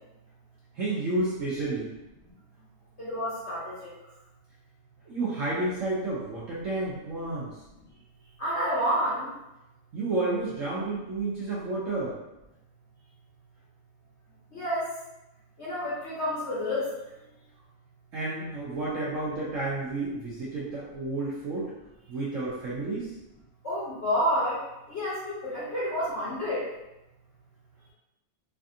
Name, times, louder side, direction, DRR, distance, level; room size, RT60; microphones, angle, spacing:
voice 1, 0.7-1.9 5.1-7.5 9.9-12.2 18.1-21.7 22.1-23.1, right 2 dB, 60° right, -8 dB, 0.8 m, -31 dB
voice 2, 3.0-3.7 8.4-9.3 14.5-14.9 15.6-16.9 23.6-24.6 24.9-26.6, equal, 50° left, -9 dB, 0.8 m, -29 dB
3.3 x 2.4 x 2.6 m, 0.94 s
omnidirectional pair, 2.0 m